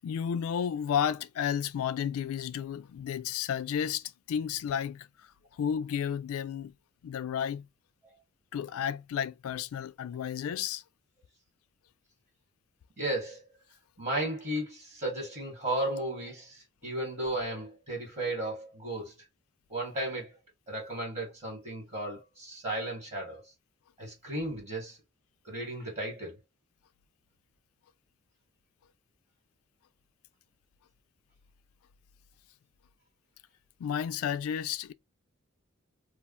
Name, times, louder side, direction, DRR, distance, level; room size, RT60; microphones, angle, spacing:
voice 1, 0.0-5.1 5.6-6.7 7.0-7.7 8.5-10.8 33.8-34.9, left 8 dB, 80° left, 0.3 m, -32 dB
voice 2, 13.0-13.4 14.0-19.1 19.7-20.3 20.7-23.4 24.0-25.0 25.4-26.4, right 1 dB, 30° right, 1.5 m, -34 dB
2.4 x 2.2 x 3.7 m
head